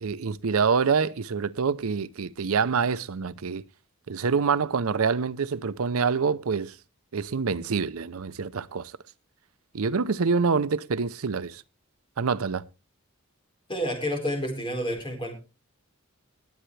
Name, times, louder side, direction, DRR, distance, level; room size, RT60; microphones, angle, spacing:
voice 1, 0.0-3.6 4.1-6.7 7.1-8.9 9.7-11.6 12.2-12.7, right 5 dB, 80° right, 0.6 m, -26 dB
voice 2, 13.7-15.3, equal, 25° left, 4.3 m, -29 dB
20.0 x 7.9 x 3.3 m
head